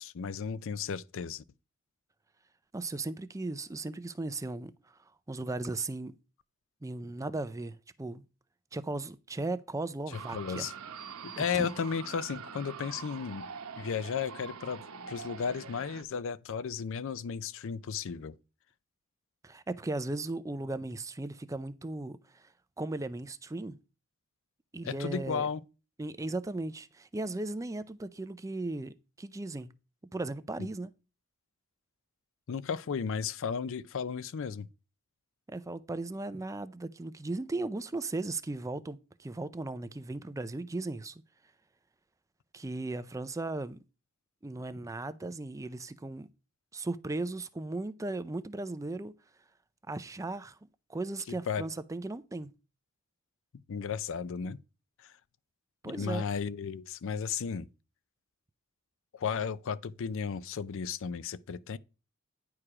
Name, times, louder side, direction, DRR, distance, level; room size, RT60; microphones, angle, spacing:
voice 1, 0.0-1.4 10.3-10.7 11.2-13.5 13.8-18.3 24.8-25.6 32.5-34.7 51.5-51.7 53.7-54.6 55.0-55.1 55.8-57.7 59.1-61.8, left 6 dB, 65° left, 0.4 m, -34 dB
voice 2, 2.7-5.0 5.3-6.2 6.8-8.2 8.7-10.7 11.5-11.7 19.4-22.5 22.8-23.8 24.7-25.5 26.0-29.7 30.1-30.9 35.5-41.2 42.5-43.8 44.4-46.3 46.7-49.1 49.9-50.6 50.9-52.5 55.8-56.3, right 2 dB, 15° right, 0.4 m, -37 dB
sound 1, 10.1-16.0, right 6 dB, 90° right, 0.9 m, -44 dB
10.0 x 4.7 x 4.8 m
head